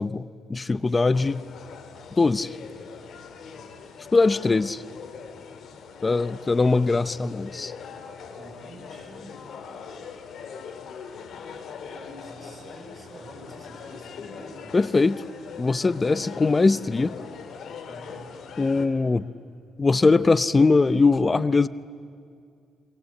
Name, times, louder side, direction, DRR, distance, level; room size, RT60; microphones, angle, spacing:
voice 1, 0.0-1.4 2.2-2.6 4.1-4.8 6.0-7.7 14.7-15.2 15.6-17.2 18.6-19.3 19.8-21.7, left 3 dB, 25° left, 16 dB, 0.7 m, -21 dB
voice 2, 0.8-1.2 3.5-3.7 6.5-6.7 8.3-9.4 11.9-14.9 15.9-17.5 17.9-18.2, right 1 dB, 15° right, 2 dB, 5.7 m, -47 dB
sound 1, 1.1-18.9, left 6 dB, 65° left, 2.6 m, -41 dB
29.0 x 23.0 x 8.5 m, 2.3 s
cardioid pair, 90°, 0 cm